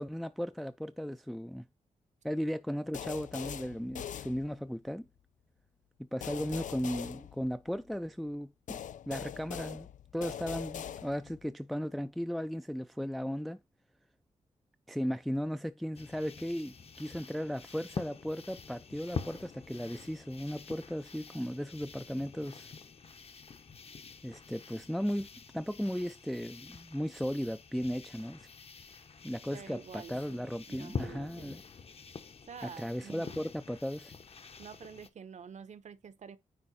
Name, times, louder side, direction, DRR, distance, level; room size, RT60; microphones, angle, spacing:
voice 1, 0.0-1.6 2.2-5.1 6.0-8.8 9.1-9.9 10.1-13.6 14.9-22.7 24.2-25.3 25.5-28.5 29.2-31.6 32.6-34.1, equal, ahead, 0.4 m, -36 dB
sound 1, 2.9-4.9 6.2-8.0 8.7-11.5, left 9 dB, 80° left, 0.5 m, -42 dB
sound 2, 16.0-35.1, left 5 dB, 50° left, 1.0 m, -46 dB
voice 2, 29.5-31.6 32.5-33.5 34.6-36.4, right 7 dB, 65° right, 0.9 m, -48 dB
9.6 x 3.7 x 4.1 m
wide cardioid pair, 100°, 13 cm